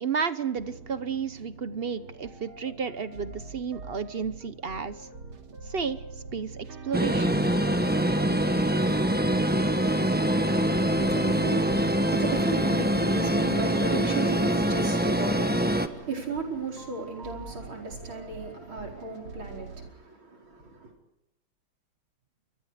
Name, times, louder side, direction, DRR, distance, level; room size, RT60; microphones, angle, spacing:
voice 1, 0.0-5.1 5.6-6.0 6.3-7.4, right 6 dB, 50° right, 0.7 m, -32 dB
sound 1, 0.5-19.9, right 4 dB, 85° right, 3.4 m, -45 dB
sound 2, 6.9-15.9, right 1 dB, 5° right, 1.0 m, -24 dB
voice 2, 10.2-20.9, right 3 dB, 70° right, 5.5 m, -36 dB
28.0 x 24.0 x 5.0 m
omnidirectional pair, 2.3 m